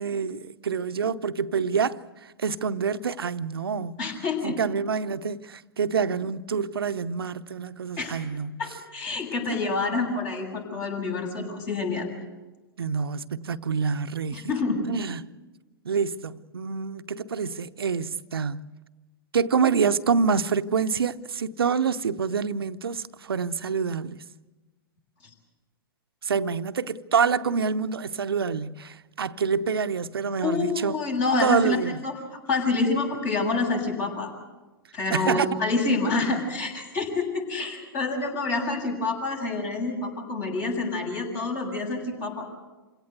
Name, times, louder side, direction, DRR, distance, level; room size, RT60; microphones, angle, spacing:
voice 1, 0.0-2.0 2.4-4.0 4.4-8.6 9.5-9.6 12.8-14.5 14.9-15.3 15.8-18.6 19.3-24.2 26.2-31.0 31.4-32.0 35.1-35.5, right 6 dB, 80° right, 0.7 m, -27 dB
voice 2, 4.0-4.6 8.0-8.2 8.6-12.1 14.3-14.8 30.4-31.8 32.0-32.1 32.5-34.3 34.9-42.5, left 3 dB, 45° left, 7.5 m, -27 dB
27.5 x 17.0 x 8.1 m
hypercardioid pair, 110°, 12 cm